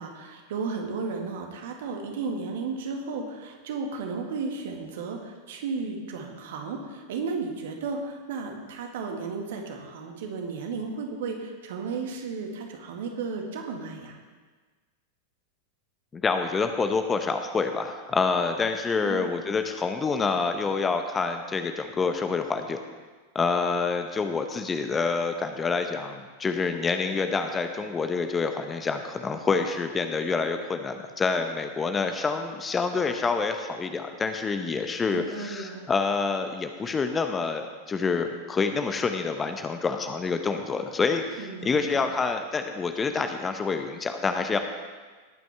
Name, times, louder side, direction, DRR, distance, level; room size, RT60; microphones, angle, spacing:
voice 1, 0.0-14.2 19.0-19.3 35.1-35.9 41.4-42.0, right 4 dB, 55° right, 2 dB, 2.0 m, -34 dB
voice 2, 16.1-22.8 23.3-44.6, left 4 dB, 15° left, 7 dB, 0.9 m, -27 dB
19.0 x 9.2 x 3.5 m, 1.4 s
figure-of-eight pair, 90°, 0 cm